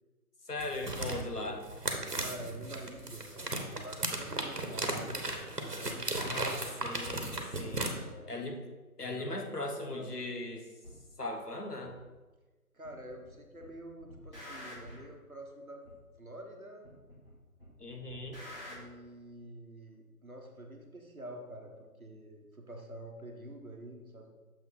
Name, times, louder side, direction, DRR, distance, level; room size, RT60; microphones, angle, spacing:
voice 1, 0.5-1.6 6.2-7.9 8.3-8.6 9.0-10.7 11.2-12.0 17.8-18.4, left 2 dB, 80° left, 3 dB, 1.2 m, -39 dB
sound 1, 0.6-7.9, right 2 dB, 90° right, 1.3 m, -36 dB
voice 2, 1.2-1.6 2.2-6.3 7.6-8.5 9.2-10.2 12.7-15.8 16.2-16.9 18.7-24.3, right 1 dB, 65° right, 2 dB, 1.3 m, -48 dB
sound 2, 10.8-11.0 11.8-11.9 12.8-13.3 13.6-15.1 15.8-15.9 16.8-17.3 17.6-18.8, left 1 dB, 35° left, 1.9 m, -48 dB
6.9 x 4.5 x 4.0 m, 1.2 s
figure-of-eight pair, 175°, 46 cm